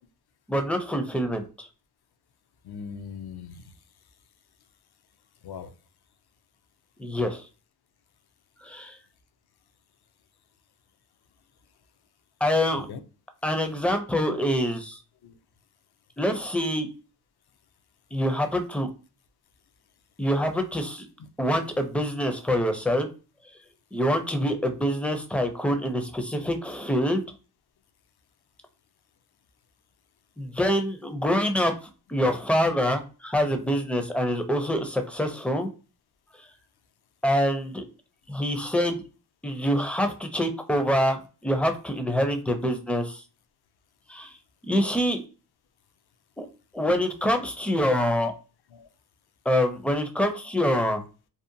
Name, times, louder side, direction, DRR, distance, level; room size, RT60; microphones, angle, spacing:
voice 1, 0.5-1.7 7.0-7.5 8.6-9.0 12.4-12.9 13.4-15.0 16.2-16.9 18.1-18.9 20.2-21.1 21.4-23.1 23.9-27.2 30.4-35.7 37.2-37.8 38.3-39.0 39.4-43.2 44.1-44.3 44.7-45.2 46.4-46.5 46.7-48.3 49.5-51.0, equal, 5° left, 6 dB, 0.4 m, -25 dB
voice 2, 2.6-3.7 5.4-5.7 12.9-13.0 15.2-15.4 21.2-21.5 48.7-48.9, left 6 dB, 65° left, 8 dB, 0.5 m, -40 dB
2.7 x 2.1 x 2.5 m, 0.34 s
wide cardioid pair, 70°, 41 cm